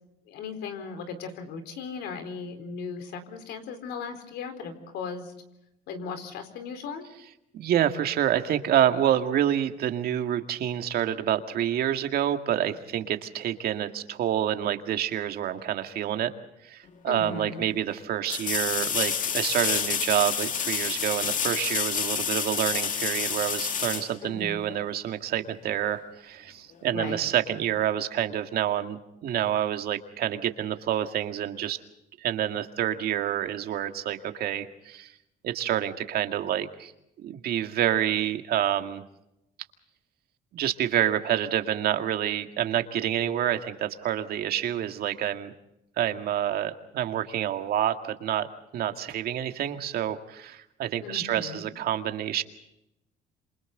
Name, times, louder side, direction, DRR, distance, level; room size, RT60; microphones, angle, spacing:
voice 1, 0.3-5.3 5.9-7.1 17.1-17.7 24.2-24.6 26.9-27.2 51.0-51.7, left 5 dB, 80° left, 8 dB, 4.4 m, -37 dB
voice 2, 7.5-16.3 16.6-31.8 32.2-35.1 35.4-36.9 37.2-39.0 40.5-45.5 46.0-48.5 48.7-52.4, right 11 dB, 65° right, 7 dB, 2.1 m, -28 dB
sound 1, 16.9-17.0 18.3-24.9 27.7-27.8, left 7 dB, 50° left, 2.3 m, -29 dB
27.5 x 27.5 x 3.9 m, 0.84 s
cardioid pair, 110°, 17 cm